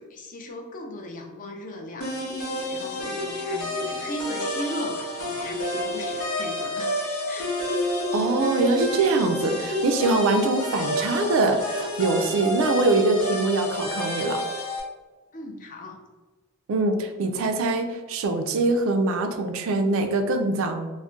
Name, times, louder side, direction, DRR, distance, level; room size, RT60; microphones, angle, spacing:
voice 1, 0.1-2.1 2.7-7.0 7.3-7.6 15.3-16.0, equal, 40° left, 2 dB, 0.4 m, -37 dB
sound 1, 2.0-14.8, left 1 dB, 85° left, 0.8 m, -29 dB
voice 2, 8.1-14.4 16.7-20.9, right 2 dB, 70° right, 6 dB, 0.4 m, -23 dB
2.3 x 2.1 x 3.7 m, 1.2 s
head